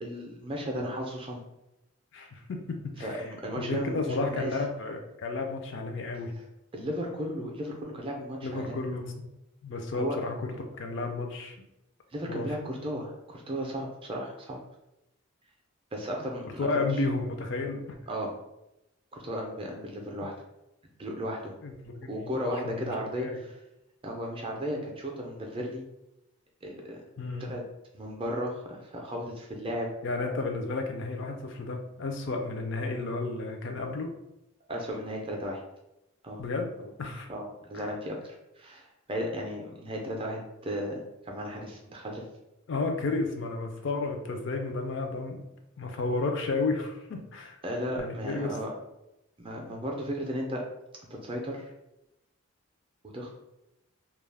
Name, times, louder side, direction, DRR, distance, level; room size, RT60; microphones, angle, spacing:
voice 1, 0.0-1.4 3.0-4.5 6.7-8.8 9.9-10.2 12.1-14.6 15.9-17.0 18.1-18.3 19.1-20.3 21.0-21.5 22.1-23.6 24.0-25.8 26.6-27.0 27.4-27.6 27.9-29.9 34.7-35.6 36.2-36.4 37.3-41.0 41.2-42.2 47.6-48.7 49.4-50.6 51.1-51.7 53.0-53.3, equal, 25° right, 0 dB, 0.4 m, -35 dB
voice 2, 2.1-3.2 3.6-6.3 8.4-9.3 9.6-11.6 12.3-12.5 16.4-18.0 21.6-22.3 22.6-23.4 27.2-27.6 30.0-34.1 36.4-37.3 37.7-37.9 42.7-45.4 45.8-47.6 48.0-48.5, left 3 dB, 55° left, 4 dB, 0.4 m, -32 dB
2.3 x 2.0 x 3.3 m, 0.89 s
head